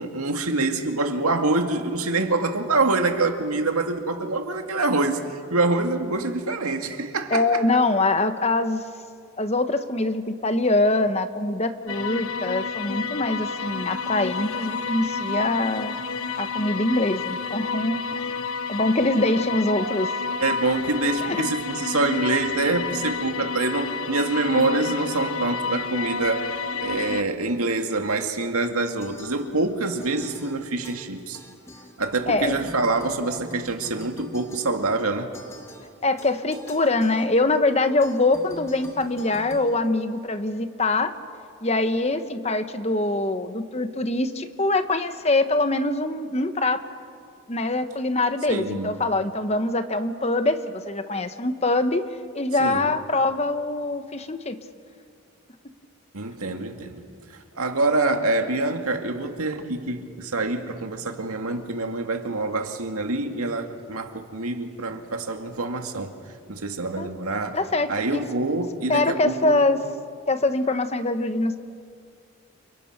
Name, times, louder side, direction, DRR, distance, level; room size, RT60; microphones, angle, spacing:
voice 1, 0.0-7.6 20.4-26.4 26.8-31.4 32.0-35.3 48.5-48.9 52.6-52.9 56.1-57.0 57.6-66.1 66.5-67.6 67.9-69.6, right 3 dB, 90° right, 5 dB, 2.2 m, -25 dB
voice 2, 7.3-8.8 9.4-16.0 16.4-18.4 18.7-20.1 21.2-21.5 26.8-27.2 32.3-32.7 36.0-41.1 41.6-46.8 47.5-52.0 52.3-54.6 56.5-56.6 67.0-67.1 67.5-68.2 68.9-69.8 70.3-71.6, left 2 dB, 30° left, 9 dB, 1.2 m, -24 dB
sound 1, 11.9-27.2, left 5 dB, 75° left, 0.9 m, -30 dB
sound 2, 29.0-29.7 30.0-32.4 32.7-40.5, left 1 dB, 10° left, 1.6 m, -46 dB
29.0 x 28.5 x 6.0 m, 2.2 s
head